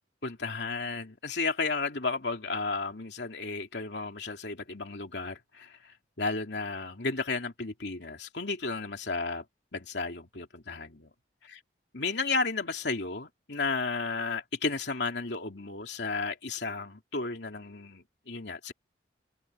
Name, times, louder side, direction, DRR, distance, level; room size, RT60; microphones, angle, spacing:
voice 1, 0.2-9.4 9.7-10.9 11.5-11.6 11.9-18.7, left 3 dB, 75° left, 2.7 m, -33 dB
head